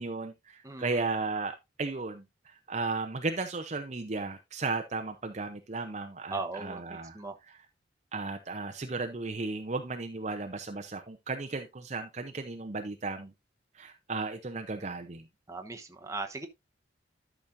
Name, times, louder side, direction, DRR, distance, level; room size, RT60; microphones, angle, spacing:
voice 1, 0.0-7.6 8.1-13.3 13.7-15.3, right 3 dB, 35° right, 0.7 m, -35 dB
voice 2, 0.6-1.1 6.3-7.4 15.5-16.5, right 3 dB, 15° right, 1.0 m, -38 dB
12.5 x 6.1 x 2.6 m
head